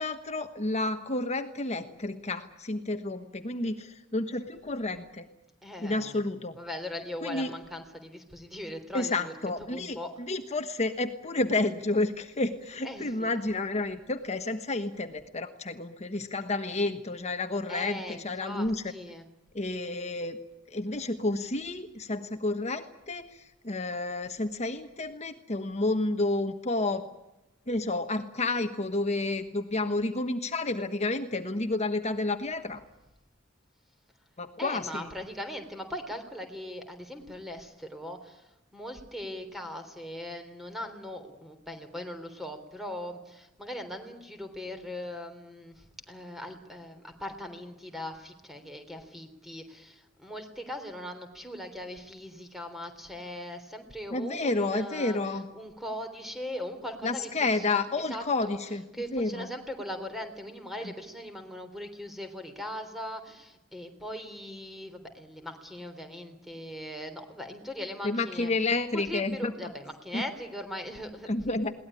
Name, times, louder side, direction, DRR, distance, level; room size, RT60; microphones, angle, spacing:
voice 1, 0.0-5.3 5.8-6.6 7.2-7.5 8.9-18.8 19.5-20.4 20.7-27.0 27.7-32.8 34.4-35.1 54.1-55.5 57.0-58.8 59.1-59.5 60.8-60.9 68.0-69.5 70.1-70.2 71.3-71.7, left 2 dB, 35° left, 8 dB, 1.2 m, -30 dB
voice 2, 5.6-6.2 6.6-9.3 9.6-10.1 12.8-13.3 17.7-19.3 34.6-55.2 55.5-57.8 58.1-58.6 58.9-68.5 68.9-71.5, left 1 dB, ahead, 7 dB, 3.5 m, -40 dB
22.0 x 18.5 x 9.9 m, 0.93 s
head